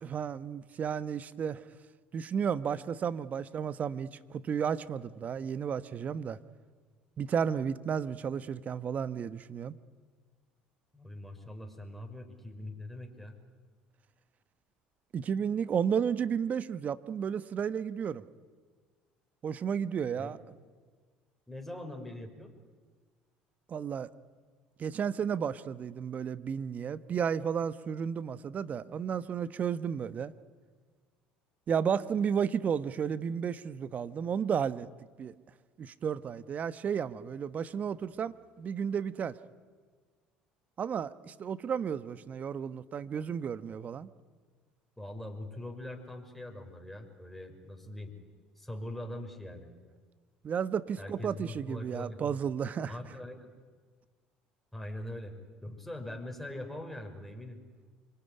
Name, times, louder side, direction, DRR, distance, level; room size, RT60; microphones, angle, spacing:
voice 1, 0.0-1.6 2.1-6.4 7.2-9.8 15.1-18.2 19.4-20.4 23.7-24.1 24.8-30.3 31.7-34.9 35.2-35.3 35.8-39.4 40.8-44.1 50.4-52.9, right 7 dB, 40° right, 14 dB, 1.1 m, -33 dB
voice 2, 10.9-13.4 20.2-20.4 21.5-22.5 45.0-48.1 48.6-49.7 51.0-52.4 52.9-53.5 54.7-55.3 55.6-57.6, left 1 dB, 5° left, 3 dB, 5.6 m, -42 dB
25.5 x 23.5 x 10.0 m, 1.5 s
hypercardioid pair, 70°, 4 cm